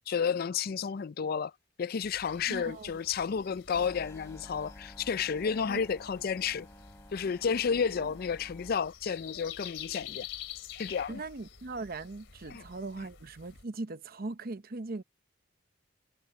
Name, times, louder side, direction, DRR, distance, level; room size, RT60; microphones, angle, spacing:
voice 1, 0.1-1.5 1.8-6.7 7.1-10.3 10.7-11.2 12.5-12.6, left 6 dB, 55° left, 0.4 m, -31 dB
sound 1, 2.0-13.6, left 9 dB, 75° left, 3.2 m, -48 dB
voice 2, 2.5-2.9 5.7-5.8 7.9-8.1 11.1-15.0, right 3 dB, 50° right, 0.8 m, -39 dB
sound 2, 3.7-8.7, left 1 dB, 15° left, 3.5 m, -51 dB
head